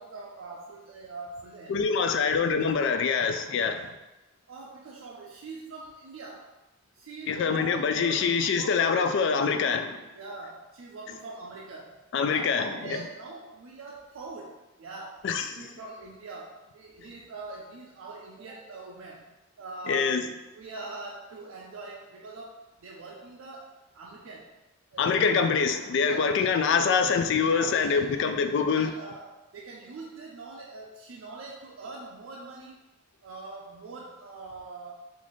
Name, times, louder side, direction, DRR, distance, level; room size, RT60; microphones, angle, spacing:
voice 1, 0.0-2.2 3.6-3.9 4.5-6.5 6.9-8.3 8.6-9.0 10.2-12.0 12.3-19.3 19.6-20.1 20.5-24.5 24.9-25.1 26.0-26.4 27.5-28.2 28.7-32.8 33.2-34.9, right 3 dB, 80° right, -3 dB, 0.4 m, -43 dB
voice 2, 1.7-3.8 7.3-10.0 12.1-13.0 15.2-15.6 19.9-20.2 25.0-28.9, left 5 dB, 60° left, 7 dB, 0.3 m, -25 dB
3.1 x 2.5 x 3.9 m, 1.0 s
head